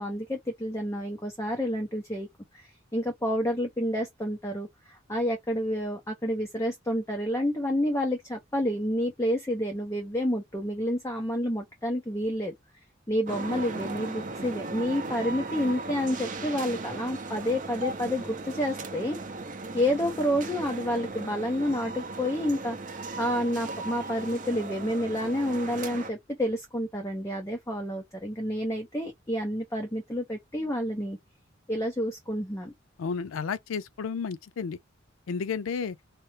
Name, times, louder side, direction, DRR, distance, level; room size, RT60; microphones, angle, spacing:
voice 1, 0.0-2.3 2.9-12.5 13.1-19.2 19.7-31.2 31.7-32.7, equal, 15° left, 0.6 m, -29 dB
sound 1, 13.3-26.1, right 3 dB, 40° right, 0.6 m, -37 dB
voice 2, 33.0-34.8 35.3-36.0, left 5 dB, 90° left, 0.4 m, -32 dB
4.3 x 2.0 x 3.2 m
head